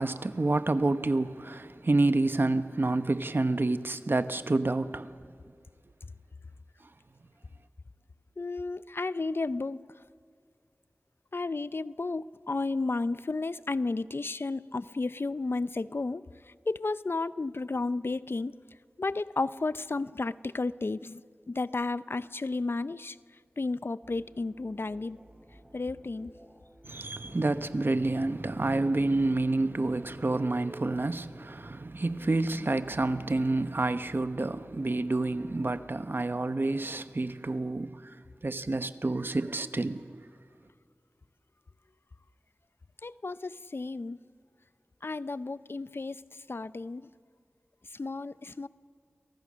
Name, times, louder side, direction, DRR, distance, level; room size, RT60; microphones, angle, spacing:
voice 1, 0.0-5.1 26.9-38.0 38.4-40.3, right 2 dB, 55° right, 1.1 m, -28 dB
voice 2, 8.4-9.9 11.3-18.6 19.0-21.2 21.5-23.2 23.6-25.2 25.7-26.3 27.3-27.4 43.0-44.2 45.0-47.1 47.9-48.7, left 3 dB, 60° left, 0.6 m, -33 dB
sound 1, 24.0-35.8, right 1 dB, 10° right, 3.8 m, -54 dB
29.5 x 23.5 x 6.4 m
wide cardioid pair, 45°, 4 cm